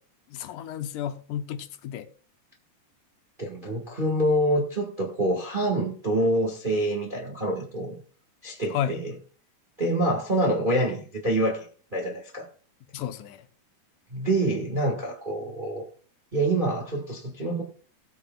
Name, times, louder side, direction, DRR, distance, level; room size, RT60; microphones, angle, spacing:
voice 1, 0.3-2.1 8.7-9.0 12.9-13.4, left 10 dB, 80° left, 2.3 m, -32 dB
voice 2, 3.4-8.0 8.4-9.1 9.8-11.6 11.9-12.5 14.1-15.8 16.3-17.6, right 1 dB, 30° right, 0.9 m, -26 dB
18.0 x 8.2 x 2.3 m
omnidirectional pair, 3.7 m